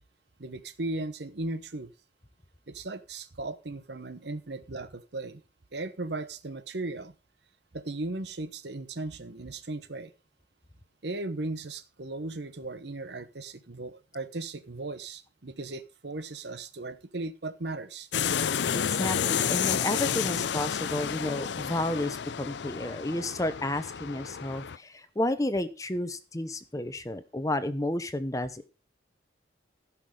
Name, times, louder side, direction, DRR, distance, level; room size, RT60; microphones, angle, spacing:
voice 1, 0.4-1.9 2.7-5.4 5.7-7.1 7.7-10.1 11.0-18.1, right 2 dB, 65° right, 12 dB, 1.0 m, -37 dB
sound 1, 18.1-24.8, left 8 dB, 70° left, 0.5 m, -30 dB
voice 2, 18.7-28.7, left 1 dB, 20° left, 11 dB, 0.8 m, -31 dB
15.5 x 6.1 x 5.0 m, 0.32 s
head